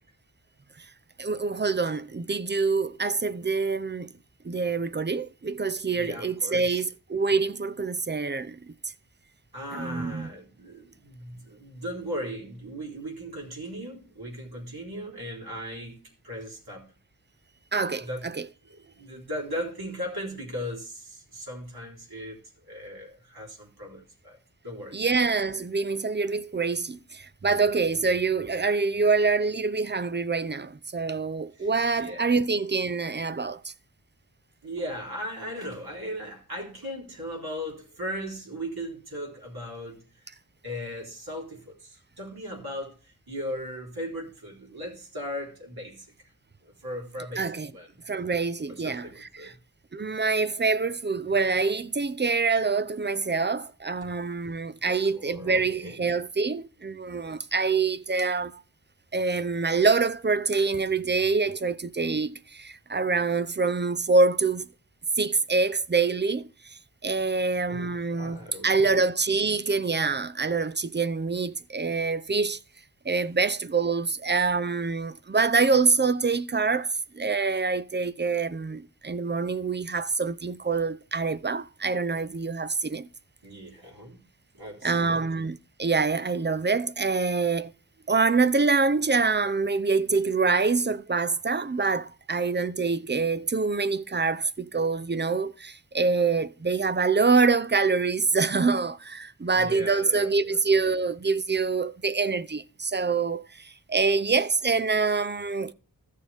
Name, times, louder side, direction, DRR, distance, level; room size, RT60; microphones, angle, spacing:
voice 1, 1.2-4.1 4.4-8.6 9.7-10.3 17.7-18.4 24.9-33.7 47.4-47.7 48.1-49.5 49.9-58.6 59.1-64.7 65.2-66.5 67.0-72.6 73.1-83.1 84.8-87.7 88.1-105.7, right 4 dB, 30° right, 0.6 m, -25 dB
voice 2, 5.9-6.8 9.5-16.9 18.0-18.3 18.7-22.4 22.7-24.4 24.6-25.0 31.5-31.7 32.0-32.3 34.6-40.0 40.6-46.1 46.6-48.0 48.7-49.6 54.0-54.1 54.8-56.1 67.7-69.1 83.4-84.2 84.5-85.3 99.4-100.6, equal, 75° right, 4.0 m, -38 dB
15.0 x 6.6 x 3.5 m
wide cardioid pair, 55°, 38 cm